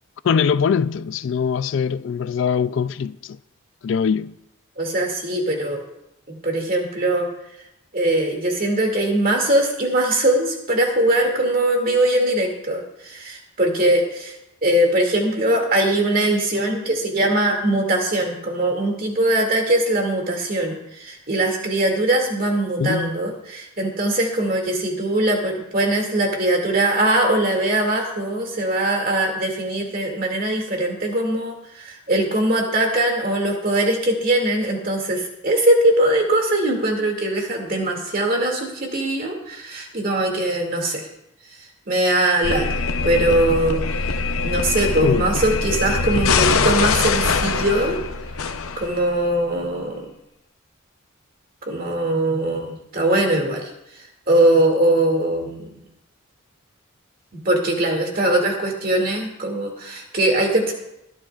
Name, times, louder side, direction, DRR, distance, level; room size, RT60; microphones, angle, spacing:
voice 1, 0.2-3.4 3.8-4.3 22.8-23.1 45.0-45.3, left 6 dB, 60° left, 0.3 m, -22 dB
voice 2, 4.8-5.8 6.3-7.3 7.9-14.3 14.6-41.0 41.9-42.6 43.0-43.8 44.4-48.0 48.8-50.1 51.7-53.7 54.3-55.6 57.4-60.7, right 1 dB, 45° right, 2.3 m, -21 dB
sound 1, 42.4-49.3, left 4 dB, 85° left, 0.7 m, -23 dB
20.5 x 11.5 x 2.4 m
head